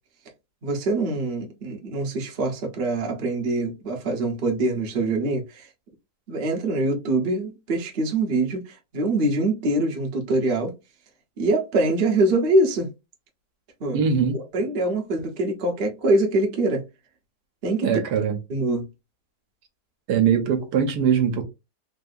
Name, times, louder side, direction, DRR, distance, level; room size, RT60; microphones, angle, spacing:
voice 1, 0.6-5.7 6.3-10.7 11.4-12.9 13.8-14.0 14.5-16.8 17.6-17.9 18.5-18.9, right 2 dB, 45° right, 0.8 m, -24 dB
voice 2, 13.9-14.4 17.8-18.4 20.1-21.4, right 7 dB, 75° right, 1.2 m, -21 dB
3.5 x 2.7 x 2.4 m
omnidirectional pair, 1.9 m